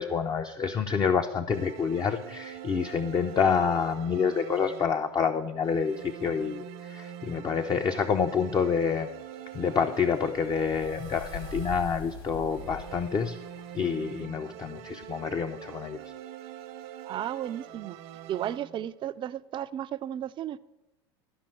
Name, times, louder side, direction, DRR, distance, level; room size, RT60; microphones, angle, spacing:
voice 1, 0.0-9.1 9.5-13.4 13.7-16.0, left 6 dB, 30° left, 6 dB, 0.6 m, -28 dB
sound 1, 1.5-5.2 5.6-12.1 12.5-18.9, right 10 dB, 70° right, 0.8 m, -44 dB
sound 2, 8.8-14.1, left 4 dB, 65° left, 3.3 m, -44 dB
voice 2, 17.0-18.0 18.3-20.6, right 11 dB, 35° right, 13 dB, 0.4 m, -34 dB
12.0 x 5.2 x 7.7 m, 0.96 s
hypercardioid pair, 95°, 14 cm